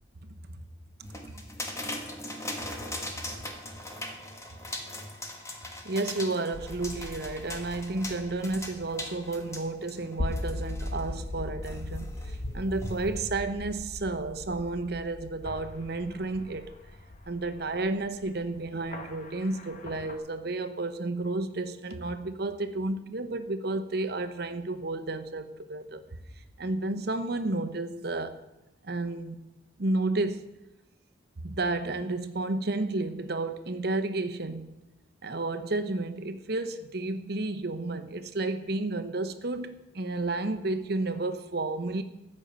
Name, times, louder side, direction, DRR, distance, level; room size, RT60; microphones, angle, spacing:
sound 1, 1.0-11.0 11.6-13.4, left 1 dB, 15° left, 1.4 m, -40 dB
voice 1, 5.8-16.7 17.3-26.0 26.6-28.4 28.8-29.4 29.8-30.4 31.4-34.7 35.2-42.0, right 2 dB, 55° right, 0.9 m, -31 dB
sound 2, 6.5-20.2, left 1 dB, 40° left, 1.2 m, -40 dB
14.5 x 5.4 x 8.8 m
head